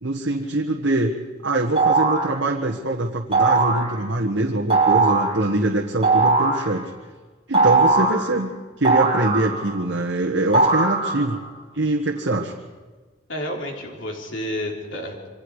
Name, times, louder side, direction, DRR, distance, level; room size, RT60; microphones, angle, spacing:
voice 1, 0.0-1.1 1.4-6.9 7.5-8.5 8.8-11.4 11.7-12.5, right 2 dB, 80° right, 0 dB, 1.6 m, -23 dB
sound 1, 1.8-2.3 3.3-3.9 4.7-5.3 6.0-6.7 7.5-8.2 8.8-9.8 10.5-11.4, right 3 dB, 30° right, 5.0 m, -19 dB
voice 2, 13.3-15.3, left 1 dB, 85° left, 1 dB, 4.0 m, -30 dB
28.0 x 24.5 x 5.0 m, 1.3 s
head